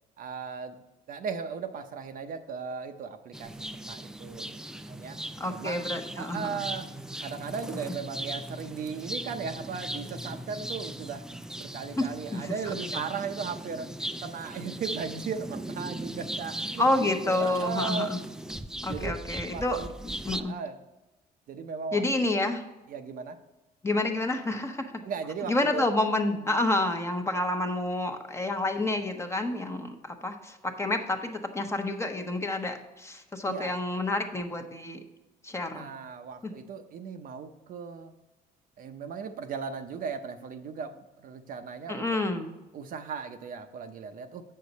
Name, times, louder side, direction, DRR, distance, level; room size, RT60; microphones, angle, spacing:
voice 1, 0.2-0.8 1.1-3.5 3.9-4.5 4.9-5.2 5.5-5.9 6.2-6.9 7.2-11.3 11.6-13.9 14.2-18.2 18.9-19.2 19.5-19.9 20.4-20.8 21.5-22.3 22.9-23.4 25.0-25.9 26.3-26.5 33.4-33.8 35.7-38.1 38.8-42.1 42.7-44.4, right 6 dB, 55° right, 7 dB, 0.7 m, -37 dB
sound 1, 3.3-20.4, right 1 dB, 5° right, 0.3 m, -38 dB
voice 2, 5.4-6.6 12.0-13.0 16.8-18.2 18.8-19.8 20.2-20.6 21.9-22.6 23.8-24.9 25.5-35.0 35.4-35.9 36.4-36.5 41.9-42.5, left 2 dB, 15° left, 5 dB, 0.9 m, -29 dB
7.8 x 6.6 x 4.1 m, 1.0 s
cardioid pair, 110°, 17 cm